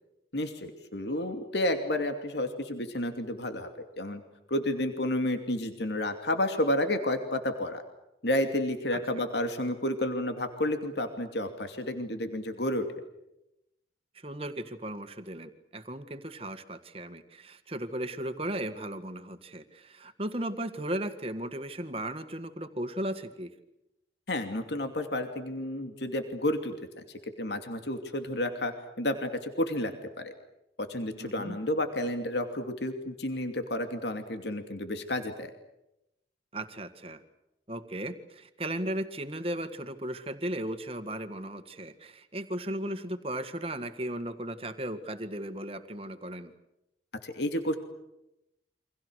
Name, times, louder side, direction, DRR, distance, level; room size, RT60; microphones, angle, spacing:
voice 1, 0.3-4.2 4.5-7.8 8.2-12.9 24.3-27.0 27.4-29.9 30.2-30.3 30.9-35.5 47.2-47.8, left 1 dB, 70° left, 6 dB, 2.7 m, -31 dB
voice 2, 8.9-9.2 14.1-23.5 31.2-31.6 36.5-37.2 37.7-46.5, right 1 dB, 30° right, 9 dB, 1.9 m, -36 dB
29.5 x 25.5 x 6.5 m, 0.87 s
head